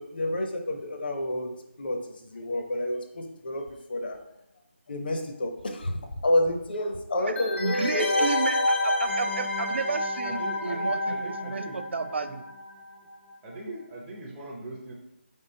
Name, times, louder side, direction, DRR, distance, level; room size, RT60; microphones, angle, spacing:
voice 1, 0.0-1.5 1.8-3.6 3.9-4.2 4.9-5.9 6.2-8.3, left 1 dB, 50° left, 3 dB, 0.7 m, -29 dB
sound 1, 7.4-12.8 13.1-13.2, left 1 dB, 70° left, 1.1 m, -28 dB
voice 2, 7.6-12.4, right 4 dB, 65° right, 11 dB, 0.4 m, -32 dB
voice 3, 10.2-11.8 12.2-12.4 13.4-14.9, right 1 dB, 10° right, -5 dB, 0.5 m, -40 dB
4.8 x 3.6 x 2.7 m, 0.82 s
figure-of-eight pair, 160°, 7 cm